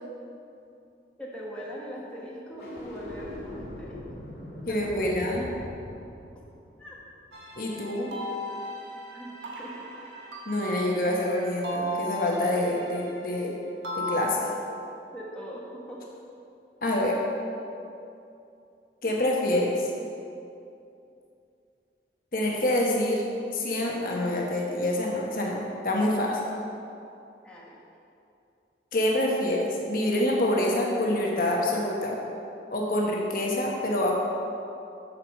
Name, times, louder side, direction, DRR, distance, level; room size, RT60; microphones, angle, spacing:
voice 1, 1.2-4.0 4.7-5.1 6.8-7.0 9.1-9.7 15.1-16.0 27.4-27.8, equal, 5° left, -5 dB, 1.1 m, -41 dB
sound 1, 2.5-7.8, left 1 dB, 70° left, 2.0 m, -42 dB
voice 2, 4.7-5.4 7.6-8.1 10.5-13.5 14.0-14.5 16.8-17.2 19.0-19.9 22.3-23.2 23.5-26.4 28.9-32.2 32.7-34.1, left 1 dB, 55° left, -2 dB, 1.2 m, -26 dB
sound 2, 7.3-13.5 13.8-15.1, equal, 90° right, 1.5 m, -36 dB
8.4 x 4.8 x 6.5 m, 2.6 s
head